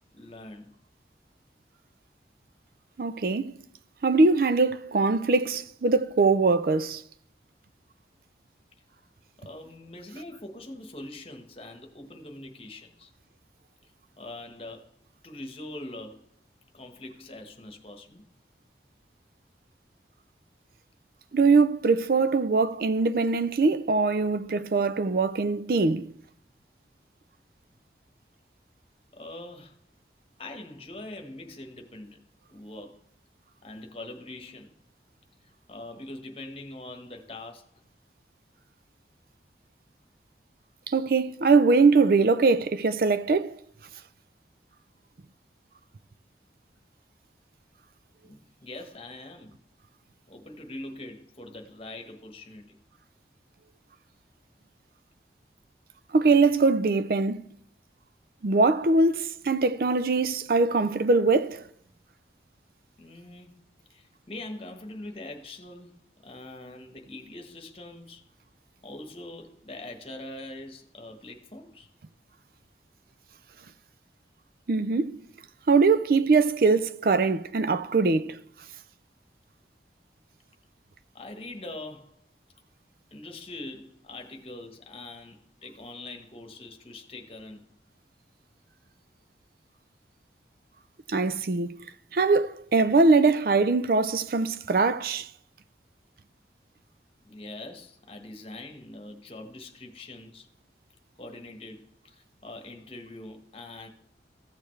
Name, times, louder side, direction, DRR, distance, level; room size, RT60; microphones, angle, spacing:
voice 1, 0.1-0.7 9.4-13.1 14.2-14.9 15.2-16.2 16.7-18.2 21.8-21.9 29.1-29.8 30.4-32.2 32.5-33.0 33.6-34.7 35.7-37.7 48.2-49.6 50.3-52.8 63.0-63.6 63.9-65.9 66.2-68.2 68.8-71.9 81.1-82.1 83.1-87.6 97.2-100.5 101.2-103.9, left 2 dB, 35° left, 1.2 m, -43 dB
voice 2, 3.0-3.5 4.0-7.0 21.3-26.1 40.9-43.5 56.1-57.4 58.4-61.6 74.7-75.2 75.7-78.4 91.1-91.8 92.1-95.3, right 3 dB, 55° right, 0.4 m, -22 dB
14.5 x 6.7 x 3.2 m
head